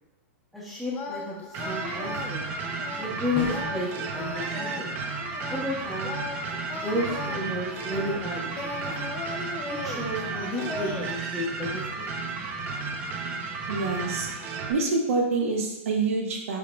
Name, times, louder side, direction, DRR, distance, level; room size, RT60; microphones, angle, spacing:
voice 1, 0.5-2.5 3.0-5.0 5.5-6.2 6.7-8.6 8.8-9.0 9.7-12.1, left 1 dB, ahead, -10 dB, 0.8 m, -32 dB
sound 1, 0.9-11.1, left 3 dB, 25° left, 0.4 m, -38 dB
sound 2, 1.5-14.7, right 4 dB, 30° right, 0.5 m, -33 dB
sound 3, 3.4-3.9, left 3 dB, 40° left, 0.9 m, -35 dB
voice 2, 13.7-14.3 14.7-16.6, right 3 dB, 80° right, 0 dB, 1.2 m, -26 dB
5.1 x 4.0 x 2.3 m, 0.93 s
hypercardioid pair, 145°, 7 cm